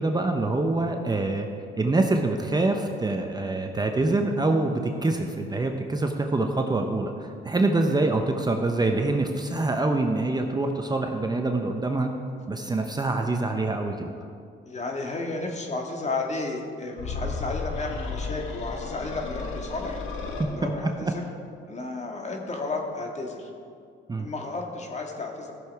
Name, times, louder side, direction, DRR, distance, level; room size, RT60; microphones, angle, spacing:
voice 1, 0.0-1.5 1.8-12.1 12.5-14.1 20.4-20.7 21.0-21.1 24.1-24.3, right 2 dB, 20° right, 4 dB, 0.8 m, -25 dB
voice 2, 14.6-20.0 20.5-21.2 21.7-23.5 24.2-25.5, left 3 dB, 35° left, 1 dB, 1.8 m, -32 dB
sound 1, 16.9-20.5, left 3 dB, 85° left, 1.4 m, -33 dB
15.5 x 6.8 x 4.7 m, 2.3 s
cardioid pair, 90°, 20 cm